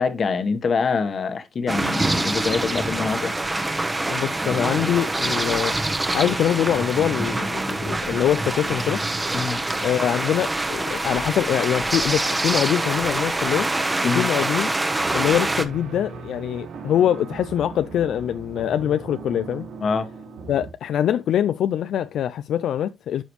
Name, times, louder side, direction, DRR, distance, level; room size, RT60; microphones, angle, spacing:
voice 1, 0.0-3.3 9.3-9.6 14.0-14.3 19.8-20.1, left 5 dB, 45° left, 1.3 m, -25 dB
sound 1, 1.7-15.6, right 2 dB, 15° right, 1.0 m, -25 dB
voice 2, 4.1-5.8 6.1-9.0 9.8-13.7 14.0-14.7 15.1-19.7 20.5-23.2, left 10 dB, 75° left, 0.4 m, -23 dB
sound 2, 15.0-20.7, right 5 dB, 80° right, 2.0 m, -38 dB
11.5 x 5.0 x 3.1 m
cardioid pair, 135°, 0 cm